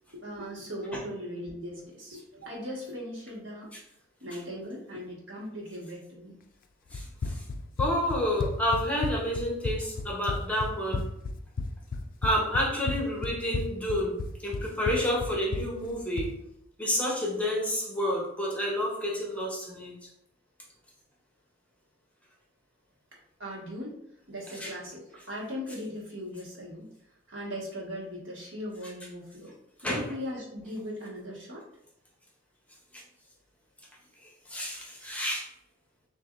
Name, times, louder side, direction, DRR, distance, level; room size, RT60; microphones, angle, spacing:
voice 1, 0.1-3.7 4.2-6.4 23.4-23.9 24.3-26.9 27.3-29.5 29.8-31.6, equal, 65° right, -4 dB, 1.5 m, -38 dB
Run, 6.9-16.4, left 3 dB, 45° left, 0.3 m, -33 dB
voice 2, 6.9-7.3 7.8-11.1 12.2-14.2 14.4-16.3 16.8-19.9 24.6-24.7 29.8-30.0 34.5-35.5, equal, 5° left, -3 dB, 0.8 m, -29 dB
6.8 x 2.6 x 2.5 m, 0.75 s
head